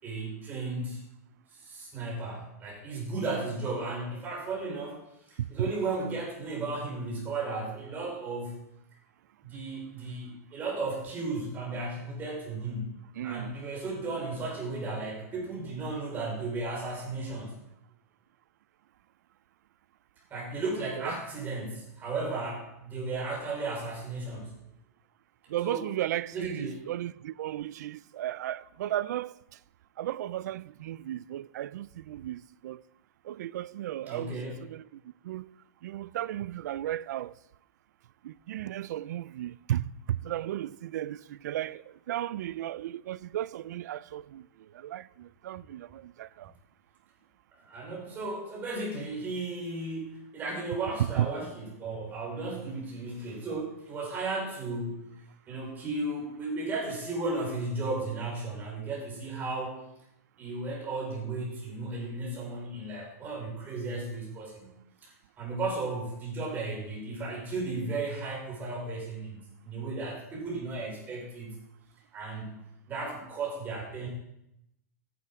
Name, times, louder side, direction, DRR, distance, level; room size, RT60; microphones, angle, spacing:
voice 1, 0.0-1.0 1.5-5.0 5.3-8.6 9.4-17.5 20.3-24.6 25.6-25.8 26.3-26.8 34.0-34.6 47.6-55.1 55.5-59.8 60.4-64.7 65.0-71.6 72.1-72.5 72.9-74.1, right 3 dB, 20° right, 4.9 m, -35 dB
voice 2, 5.4-5.7 13.2-13.6 21.0-21.2 25.5-29.3 30.0-32.8 33.2-35.5 35.8-37.3 38.2-44.4 44.7-46.5 51.0-51.3, right 12 dB, 80° right, 0.4 m, -34 dB
13.5 x 10.0 x 3.6 m
supercardioid pair, 160°, 9 cm